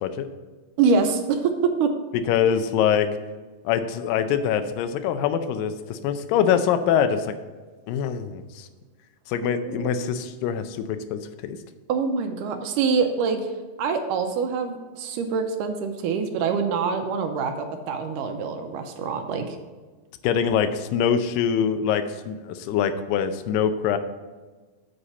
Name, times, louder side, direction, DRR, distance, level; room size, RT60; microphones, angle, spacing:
voice 1, 0.8-1.9 9.4-10.2 11.9-13.5 13.8-19.6, right 5 dB, 80° right, 5 dB, 2.0 m, -25 dB
voice 2, 2.3-3.1 3.7-7.3 7.9-8.7 9.3-11.6 20.2-24.0, left 8 dB, 80° left, 9 dB, 2.2 m, -24 dB
7.9 x 4.2 x 6.8 m, 1.3 s
omnidirectional pair, 4.1 m